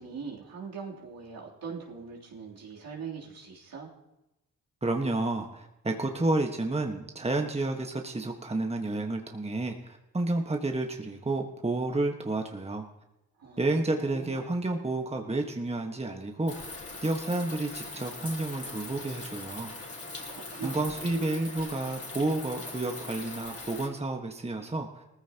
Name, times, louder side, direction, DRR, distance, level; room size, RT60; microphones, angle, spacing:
voice 1, 0.0-3.9 13.4-14.5 20.3-21.1, right 6 dB, 70° right, -4 dB, 3.4 m, -42 dB
voice 2, 4.8-12.8 13.6-16.7 17.0-19.7 20.6-25.1, right 2 dB, 15° right, 3 dB, 1.5 m, -30 dB
sound 1, 16.5-23.9, left 3 dB, 40° left, 4.2 m, -41 dB
19.0 x 14.5 x 3.0 m, 0.93 s
supercardioid pair, 45°, 36 cm